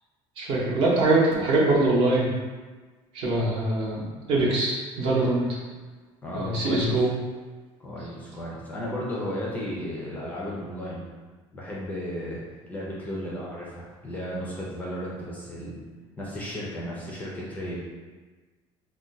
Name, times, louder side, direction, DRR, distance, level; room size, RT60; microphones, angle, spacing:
voice 1, 0.4-2.3 3.1-4.0 4.3-5.6 6.3-7.1, right 2 dB, 50° right, -4 dB, 0.7 m, -23 dB
voice 2, 6.2-6.9 7.8-11.0 11.5-12.4 12.7-15.8 16.2-17.8, equal, 15° left, -5 dB, 0.4 m, -34 dB
2.4 x 2.2 x 3.9 m, 1.3 s
cardioid pair, 180°, 12 cm